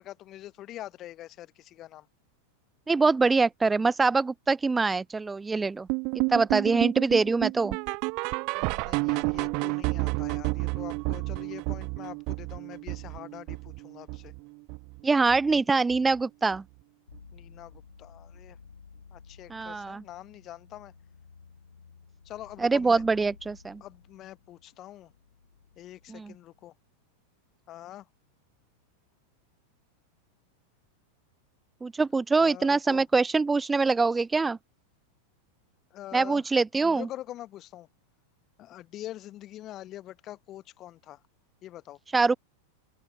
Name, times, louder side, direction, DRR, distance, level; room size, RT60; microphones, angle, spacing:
voice 1, 0.0-2.1 8.5-14.3 17.3-18.6 19.1-20.9 22.2-23.0 23.8-25.1 25.8-26.7 27.7-28.1 32.4-33.1 35.9-36.4 36.8-37.9 38.6-41.2 41.6-42.0, left 13 dB, 35° left, 1.1 m, -44 dB
voice 2, 2.9-5.9 6.3-7.8 15.0-16.6 19.5-20.0 22.6-23.8 26.1-26.3 31.8-34.6 36.1-37.1 42.1-42.4, right 4 dB, 10° right, 0.4 m, -24 dB
sound 1, 5.9-15.0 15.3-15.6 15.9-16.0 16.5-16.6 17.1-17.2, right 31 dB, 45° right, 1.2 m, -31 dB
sound 2, 17.1-26.7, left 5 dB, 75° left, 3.6 m, -54 dB
open air
figure-of-eight pair, 90°, 0 cm